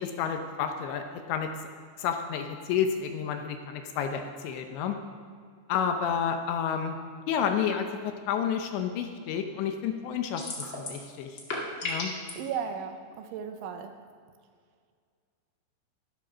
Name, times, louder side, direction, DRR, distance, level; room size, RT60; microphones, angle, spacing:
voice 1, 0.0-1.5 2.0-5.0 5.7-7.0 7.3-10.4 10.7-11.4 11.8-12.1, left 7 dB, 75° left, 5 dB, 2.8 m, -30 dB
sound 1, 10.4-11.0 11.3-12.3, left 3 dB, 45° left, 1.6 m, -34 dB
voice 2, 12.4-14.0, right 7 dB, 80° right, 7 dB, 3.2 m, -35 dB
13.0 x 12.0 x 6.1 m, 2.1 s
omnidirectional pair, 5.7 m